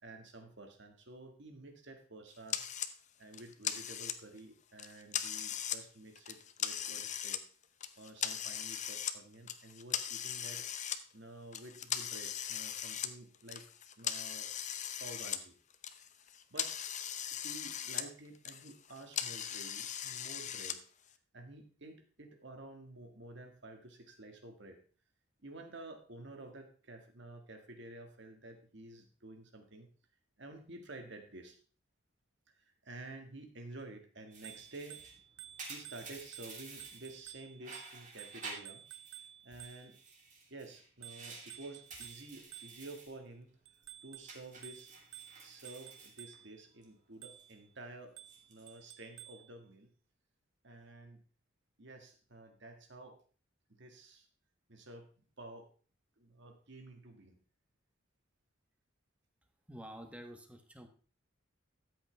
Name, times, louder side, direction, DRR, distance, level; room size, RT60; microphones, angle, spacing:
voice 1, 0.0-2.6 3.2-7.4 8.0-10.7 11.1-13.6 14.0-14.5 15.0-15.5 16.5-16.7 17.3-20.8 21.3-24.8 25.4-29.9 30.4-31.6 32.5-35.1 35.7-38.9 39.4-40.0 40.5-43.5 44.0-44.9 45.4-48.2 48.5-49.9 50.6-51.2 51.8-53.2 53.7-54.3 54.7-55.7 56.2-57.4, right 2 dB, 60° right, 5 dB, 1.8 m, -51 dB
sound 1, 2.5-2.9 3.3-4.4 4.8-5.8 6.2-7.4 7.8-9.2 9.5-11.0 11.5-15.4 15.7-18.1 18.3-20.8, left 9 dB, 35° left, 0.7 m, -39 dB
sound 2, 34.3-37.3 37.6-39.2 39.5-43.2 43.5-43.8 44.3-46.8 47.1-47.5 48.1-48.7, right 3 dB, 40° right, 2.9 m, -51 dB
Bicycle bell, 34.3-40.1 41.0-43.1 43.7-46.6 47.2-47.6 48.2-49.5, right 12 dB, 75° right, 0.7 m, -53 dB
voice 2, 59.7-60.9, equal, 5° right, 5 dB, 1.2 m, -49 dB
13.0 x 8.2 x 3.4 m, 0.40 s
head